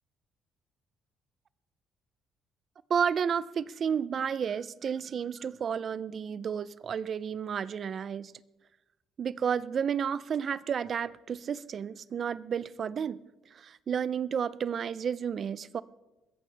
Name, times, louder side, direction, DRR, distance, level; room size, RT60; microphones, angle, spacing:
voice 1, 2.9-8.3 9.2-13.2 13.5-15.8, right 7 dB, 35° right, 0.4 m, -31 dB
22.0 x 14.5 x 3.3 m
cardioid pair, 180°, 0 cm